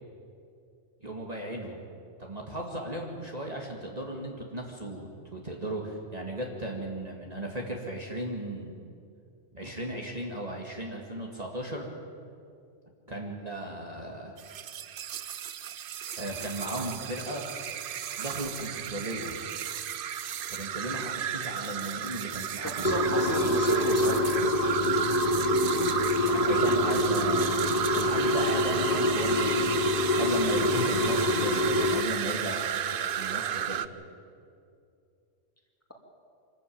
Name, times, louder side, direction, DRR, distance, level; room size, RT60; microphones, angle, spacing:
voice 1, 1.0-1.9 2.2-8.8 9.5-11.9 13.1-14.4 16.2-17.4 18.2-19.4 20.5-22.9 26.3-27.6 27.9-29.8 30.2-33.9, right 1 dB, 30° right, -1 dB, 2.1 m, -36 dB
sound 1, 14.4-33.9, right 9 dB, 55° right, 0.7 m, -33 dB
voice 2, 22.6-24.2, right 1 dB, 10° left, 0 dB, 2.7 m, -33 dB
sound 2, 22.8-32.0, left 1 dB, 40° left, 1.0 m, -26 dB
25.0 x 13.0 x 8.8 m, 2.5 s
omnidirectional pair, 1.3 m